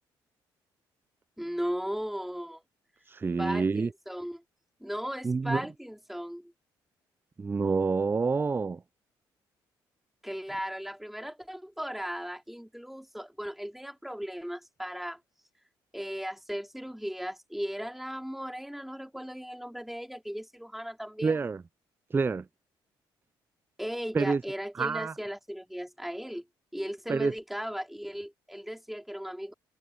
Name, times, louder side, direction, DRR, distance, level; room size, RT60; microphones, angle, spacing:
voice 1, 1.4-2.6 3.4-4.4 4.8-6.5 10.2-15.2 15.9-21.4 23.8-26.4 26.7-29.5, equal, ahead, 3.7 m, -37 dB
voice 2, 3.1-3.9 5.2-5.6 7.4-8.8 21.2-21.6 22.1-22.5 24.1-24.4 24.8-25.1 27.1-27.3, right 4 dB, 20° right, 0.3 m, -27 dB
hypercardioid pair, 55°, 10 cm